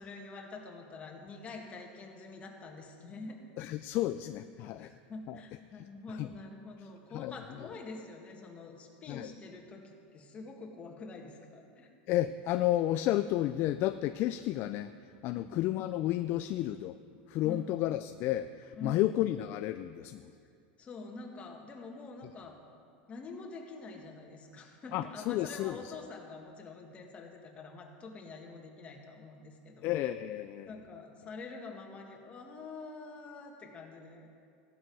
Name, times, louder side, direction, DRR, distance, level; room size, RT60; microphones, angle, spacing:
voice 1, 0.0-3.8 4.8-9.8 10.1-11.9 15.3-15.5 17.4-17.7 18.8-19.0 20.8-22.6 23.1-29.9 30.7-34.3, left 3 dB, 25° left, 1 dB, 1.9 m, -46 dB
voice 2, 3.6-4.9 5.3-5.4 5.8-6.3 7.1-7.3 9.1-9.3 12.1-17.0 17.3-20.3 24.9-25.9 29.8-30.7, left 14 dB, 45° left, 10 dB, 0.4 m, -32 dB
15.5 x 12.0 x 4.8 m, 2.3 s
supercardioid pair, 140°, 5 cm